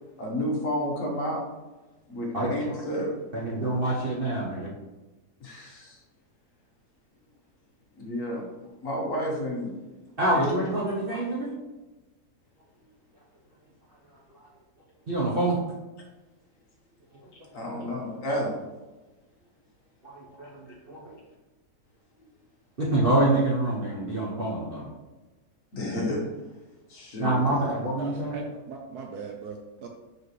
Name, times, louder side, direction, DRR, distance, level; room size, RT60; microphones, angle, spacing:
voice 1, 0.2-1.4 2.1-3.2 5.4-6.0 8.0-8.4 8.8-9.7 10.3-10.6 17.5-18.6 25.7-26.3 26.9-27.7, equal, 50° left, -1 dB, 1.5 m, -30 dB
voice 2, 2.3-2.8 3.3-4.7 10.2-11.5 15.1-15.6 17.6-17.8 20.0-21.2 22.8-24.9 27.2-28.4, right 1 dB, 40° right, -5 dB, 0.9 m, -26 dB
voice 3, 28.0-29.9, right 4 dB, 65° right, 3 dB, 1.1 m, -39 dB
6.2 x 5.0 x 3.2 m, 1.1 s
omnidirectional pair, 2.0 m